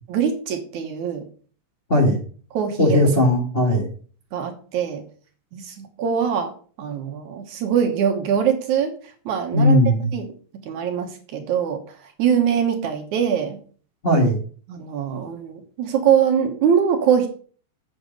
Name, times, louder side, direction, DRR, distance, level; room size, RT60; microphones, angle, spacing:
voice 1, 0.1-1.2 2.5-3.0 4.3-5.0 5.5-6.5 6.8-9.8 10.1-10.3 10.7-13.6 14.7-17.3, right 8 dB, 65° right, 5 dB, 2.3 m, -23 dB
voice 2, 2.8-3.9 9.5-10.1 14.0-14.4, left 1 dB, 35° left, -2 dB, 0.9 m, -17 dB
8.1 x 7.7 x 5.2 m, 0.43 s
omnidirectional pair, 4.0 m